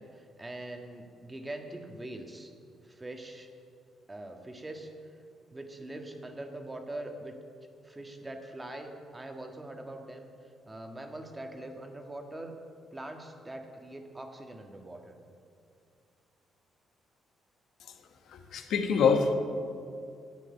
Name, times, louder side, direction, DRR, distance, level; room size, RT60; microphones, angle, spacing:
voice 1, 0.0-2.5 2.8-3.5 4.1-4.9 5.5-7.3 7.8-10.3 10.7-12.5 12.9-15.2, right 1 dB, 20° right, 4 dB, 1.6 m, -42 dB
voice 2, 18.3-19.3, left 5 dB, 75° left, 6 dB, 1.2 m, -25 dB
10.5 x 8.2 x 9.7 m, 2.4 s
cardioid pair, 90°, 0 cm